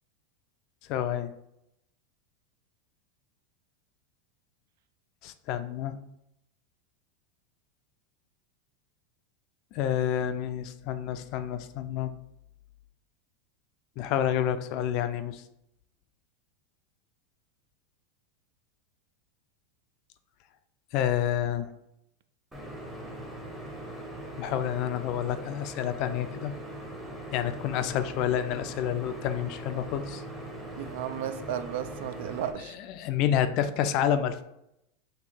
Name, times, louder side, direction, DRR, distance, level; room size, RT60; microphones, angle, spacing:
voice 1, 0.9-1.3 5.2-6.0 9.7-12.1 14.0-15.4 20.9-21.7 24.4-26.5 27.3-30.2 32.6-34.4, left 10 dB, 45° left, 0.3 m, -29 dB
sound 1, 22.5-32.5, right 1 dB, 5° right, 0.7 m, -41 dB
voice 2, 30.8-32.8, right 10 dB, 65° right, 0.3 m, -34 dB
4.4 x 2.6 x 4.2 m
supercardioid pair, 155°, 0 cm